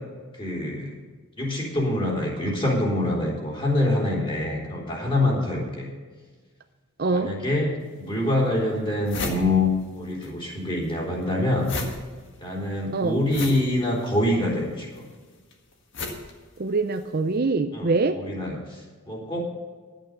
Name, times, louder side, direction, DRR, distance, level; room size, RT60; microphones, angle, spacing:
voice 1, 0.3-0.9 1.4-5.9 7.1-11.7 12.4-15.0 17.7-19.4, left 1 dB, 25° left, -3 dB, 3.5 m, -25 dB
voice 2, 7.0-7.3 12.9-13.2 16.6-18.2, right 3 dB, 45° right, 7 dB, 0.5 m, -24 dB
sound 1, 7.8-7.9 8.5-8.6 8.8-10.3 10.6-17.1, left 2 dB, 55° left, 1.7 m, -35 dB
11.0 x 9.0 x 6.7 m, 1.4 s
head